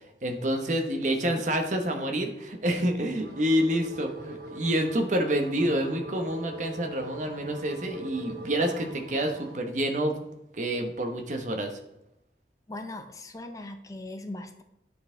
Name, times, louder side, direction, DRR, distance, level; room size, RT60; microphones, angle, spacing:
voice 1, 0.2-10.2 10.5-11.8, right 1 dB, 45° right, 4 dB, 0.9 m, -28 dB
sound 1, 3.1-9.6, right 2 dB, 70° right, 2.9 m, -42 dB
voice 2, 12.7-14.6, left 2 dB, 20° left, 7 dB, 0.5 m, -39 dB
9.7 x 4.2 x 3.8 m, 0.84 s
head